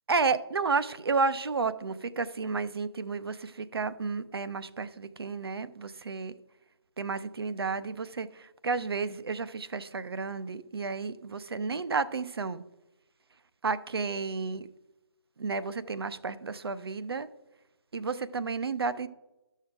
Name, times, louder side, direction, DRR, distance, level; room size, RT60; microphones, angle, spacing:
voice 1, 0.1-6.3 7.0-12.6 13.6-14.7 15.4-17.3 17.9-19.1, right 4 dB, 65° right, 14 dB, 0.6 m, -32 dB
12.0 x 6.4 x 3.7 m, 0.98 s
figure-of-eight pair, 150°, 14 cm